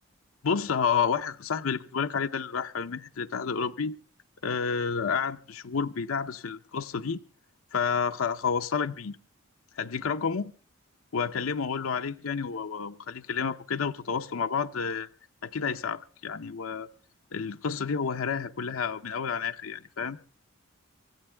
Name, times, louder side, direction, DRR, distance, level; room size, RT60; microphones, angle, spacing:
voice 1, 0.4-4.0 4.4-7.2 7.7-9.2 9.8-10.5 11.1-15.1 15.4-16.9 17.3-20.2, left 6 dB, 80° left, 0.7 m, -30 dB
24.5 x 15.0 x 3.4 m
head